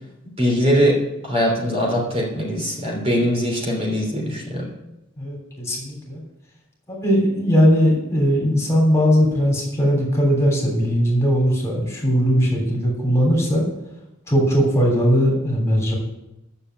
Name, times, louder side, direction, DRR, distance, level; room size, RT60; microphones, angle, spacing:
voice 1, 0.4-1.0 1.2-4.7, equal, 30° right, -2 dB, 3.1 m, -21 dB
voice 2, 5.2-6.2 6.9-13.6 14.3-15.9, equal, 15° left, -2 dB, 3.2 m, -19 dB
11.0 x 7.1 x 7.9 m, 0.92 s
head